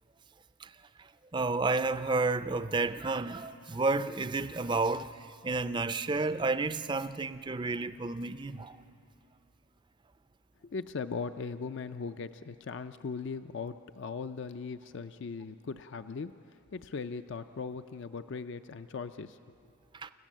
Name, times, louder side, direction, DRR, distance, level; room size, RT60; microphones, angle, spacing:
voice 1, 1.3-5.1 5.4-8.8 19.9-20.1, right 3 dB, 20° right, 0.4 m, -31 dB
voice 2, 10.6-16.3 16.7-19.4, left 5 dB, 55° left, 0.4 m, -39 dB
29.5 x 15.0 x 7.4 m
head